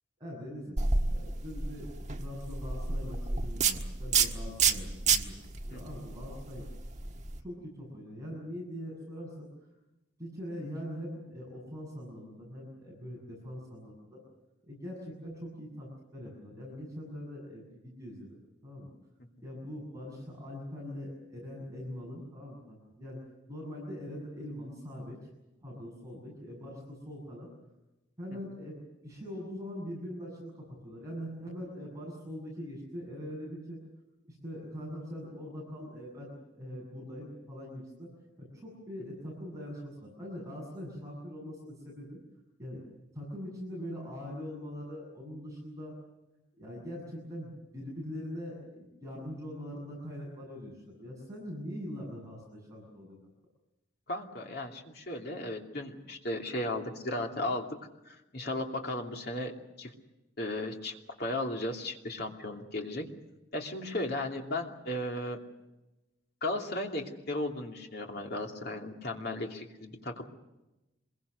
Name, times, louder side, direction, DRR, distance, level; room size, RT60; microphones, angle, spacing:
voice 1, 0.2-0.8 1.1-5.4 5.6-6.7 7.1-9.5 10.2-14.2 14.7-18.3 18.6-18.9 19.4-23.2 23.5-25.2 25.6-27.5 28.2-28.8 29.0-33.8 34.2-38.1 38.4-42.2 42.6-42.8 43.1-45.9 46.6-53.2, equal, 15° right, -3 dB, 7.3 m, -42 dB
sound 1, 0.8-7.4, right 5 dB, 35° right, 1.4 m, -30 dB
voice 2, 54.1-57.7 58.0-59.5 59.8-59.9 60.4-63.0 63.5-65.4 66.4-70.2, left 1 dB, 50° left, 1 dB, 2.8 m, -35 dB
26.0 x 22.0 x 6.7 m, 1.0 s
head